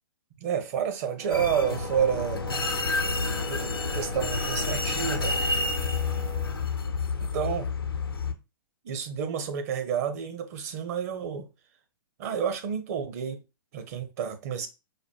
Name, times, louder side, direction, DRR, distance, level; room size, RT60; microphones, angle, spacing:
voice 1, 0.4-2.8 3.5-5.3 7.3-7.7 8.8-11.5 12.2-13.4 13.7-14.7, right 8 dB, 45° right, 1.0 m, -30 dB
Wind instrument woodwind instrument, 1.2-6.5, right 4 dB, 60° right, 2.6 m, -42 dB
sound 1, 1.3-8.3, left 4 dB, 85° left, 0.8 m, -29 dB
5.0 x 2.2 x 4.5 m
figure-of-eight pair, 120°, 12 cm